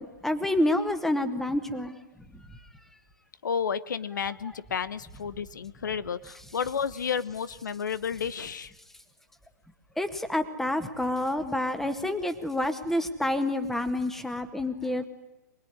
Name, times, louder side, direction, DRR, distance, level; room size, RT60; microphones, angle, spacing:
voice 1, 0.0-2.0 2.5-2.7 10.0-15.1, left 1 dB, 5° left, 9 dB, 1.8 m, -28 dB
voice 2, 3.4-8.7, left 7 dB, 75° left, 16 dB, 1.0 m, -31 dB
24.5 x 20.0 x 9.8 m, 1.0 s
hypercardioid pair, 120°, 10 cm